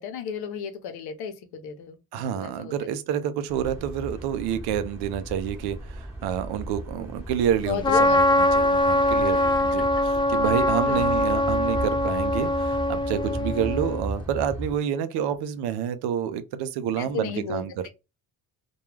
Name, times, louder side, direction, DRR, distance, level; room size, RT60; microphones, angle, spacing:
voice 1, 0.0-2.7 7.7-8.2 9.8-9.9 10.9-11.1 17.0-17.6, left 6 dB, 75° left, 0.8 m, -33 dB
voice 2, 2.1-17.9, right 9 dB, 80° right, 0.6 m, -28 dB
sound 1, 3.5-14.7, right 1 dB, 5° right, 1.0 m, -36 dB
Trumpet, 7.8-14.0, left 1 dB, 15° left, 0.4 m, -22 dB
2.3 x 2.2 x 3.1 m
cardioid pair, 90°, 38 cm